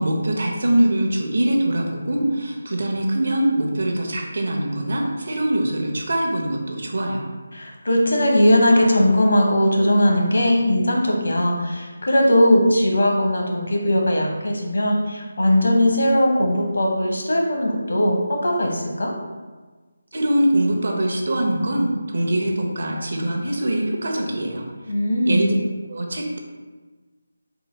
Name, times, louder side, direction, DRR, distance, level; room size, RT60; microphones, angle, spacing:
voice 1, 0.0-7.3 20.1-24.6 25.3-25.5 25.9-26.4, right 1 dB, 55° right, 1 dB, 0.6 m, -23 dB
voice 2, 7.5-19.1 24.9-25.5, left 1 dB, 75° left, 0 dB, 0.8 m, -19 dB
3.8 x 2.3 x 4.3 m, 1.3 s
figure-of-eight pair, 175°, 0 cm